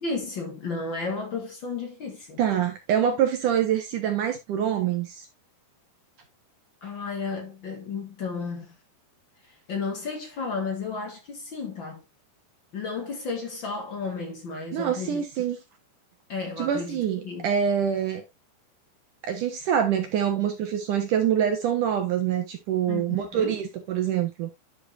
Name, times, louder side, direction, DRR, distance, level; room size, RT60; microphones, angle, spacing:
voice 1, 0.0-2.4 6.8-8.7 9.5-12.0 12.7-15.2 16.3-17.5 22.9-23.6, left 4 dB, 60° left, 1.2 m, -33 dB
voice 2, 2.4-5.3 14.7-15.6 16.6-18.2 19.2-24.5, right 9 dB, 70° right, 2.1 m, -25 dB
11.0 x 6.5 x 2.7 m
omnidirectional pair, 4.9 m